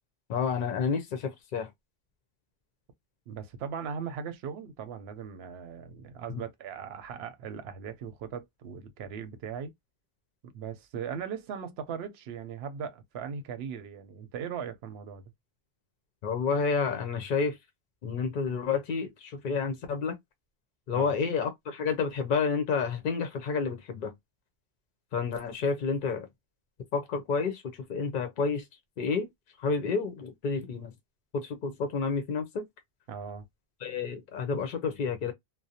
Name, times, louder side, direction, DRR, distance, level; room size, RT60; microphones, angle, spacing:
voice 1, 0.3-1.7 6.3-6.4 16.2-17.6 18.0-20.2 20.9-24.1 25.1-26.3 26.9-27.6 27.9-28.6 29.0-29.3 29.6-30.9 31.3-32.6 33.8-35.3, left 5 dB, 60° left, 0.6 m, -30 dB
voice 2, 3.3-9.7 10.5-15.2 20.9-21.2 33.1-33.5, right 7 dB, 80° right, 0.8 m, -38 dB
2.4 x 2.0 x 2.6 m
omnidirectional pair, 1.0 m